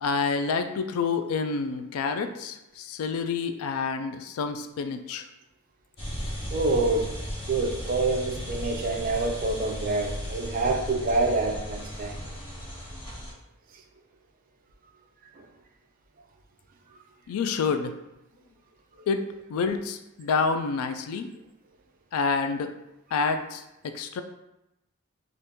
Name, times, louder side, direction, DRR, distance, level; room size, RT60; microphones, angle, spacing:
voice 1, 0.0-5.3 17.3-17.9 19.1-19.2 19.5-21.3 22.1-22.7 23.1-24.2, left 5 dB, 80° left, 9 dB, 0.3 m, -28 dB
sound 1, 6.0-13.3, equal, 25° left, 0.7 m, -35 dB
voice 2, 6.5-7.2 7.5-12.3 15.3-15.5 19.0-19.1, right 3 dB, 40° right, 3 dB, 0.4 m, -27 dB
2.8 x 2.5 x 3.5 m, 0.91 s
head